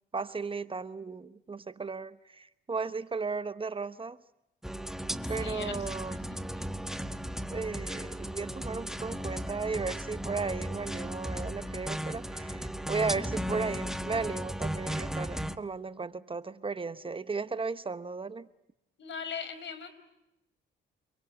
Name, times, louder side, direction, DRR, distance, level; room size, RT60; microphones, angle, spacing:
voice 1, 0.1-4.2 5.3-6.1 7.5-18.5, right 4 dB, 25° right, 1.0 m, -35 dB
sound 1, 4.6-15.6, equal, ahead, 1.4 m, -36 dB
voice 2, 5.2-6.7 13.0-13.3 19.0-19.9, left 6 dB, 65° left, 4.8 m, -41 dB
29.5 x 23.0 x 8.0 m
cardioid pair, 90°, 20 cm